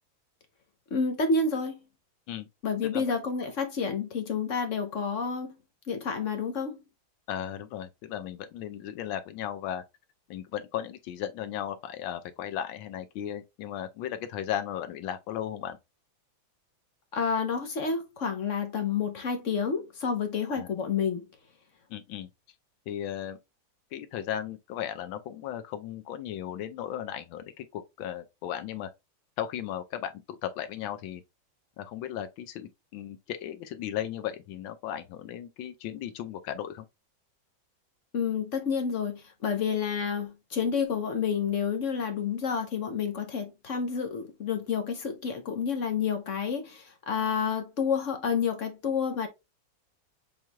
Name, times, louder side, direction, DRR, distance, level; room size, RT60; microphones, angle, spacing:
voice 1, 0.9-1.8 2.6-5.5 5.9-6.8 17.1-21.2 38.1-49.3, left 6 dB, 55° left, 0.9 m, -29 dB
voice 2, 7.3-9.8 10.3-15.8 20.5-20.7 21.9-22.3 22.9-23.4 23.9-28.9 29.4-31.2 31.8-36.8, left 10 dB, 85° left, 1.4 m, -36 dB
7.1 x 3.1 x 2.2 m
omnidirectional pair, 2.1 m